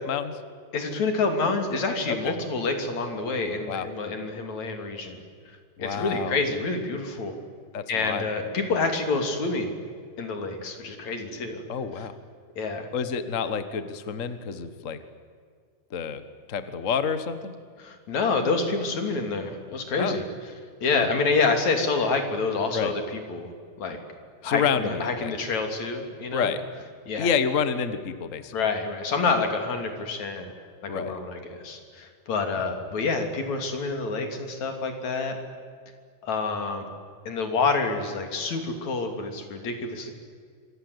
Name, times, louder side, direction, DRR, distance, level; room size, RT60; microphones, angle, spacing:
voice 1, 0.1-0.4 2.1-2.4 3.7-3.9 5.8-6.4 7.7-8.3 11.7-12.2 12.9-15.0 15.9-16.2 16.5-17.5 20.0-20.2 20.9-21.1 22.7-22.9 24.4-25.3 26.3-26.6 27.2-28.5 30.9-31.2 32.6-32.7, left 6 dB, 45° left, 11 dB, 1.0 m, -28 dB
voice 2, 0.7-5.2 5.8-7.4 7.9-9.7 10.2-11.6 12.6-12.9 17.8-20.2 20.8-23.5 23.8-24.0 24.4-26.5 27.1-27.3 28.5-30.5 30.8-35.4 36.2-36.9 37.3-40.1, left 4 dB, 65° left, 5 dB, 4.2 m, -27 dB
27.0 x 24.0 x 8.1 m, 2.1 s
omnidirectional pair, 3.5 m